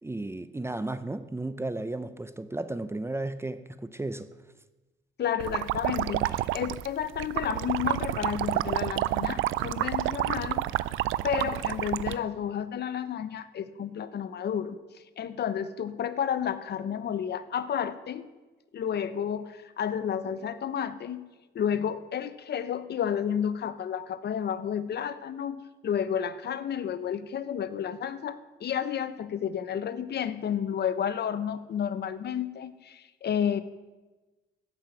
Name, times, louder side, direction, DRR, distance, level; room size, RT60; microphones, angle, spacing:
voice 1, 0.0-4.3, right 2 dB, 15° right, 13 dB, 0.6 m, -34 dB
voice 2, 5.2-10.6 11.2-14.8 15.2-18.2 18.7-21.3 21.5-33.6, left 8 dB, 55° left, 13 dB, 0.8 m, -31 dB
sound 1, 5.4-12.2, right 15 dB, 85° right, 0.4 m, -29 dB
14.0 x 5.7 x 8.9 m, 1.2 s
cardioid pair, 90°, 20 cm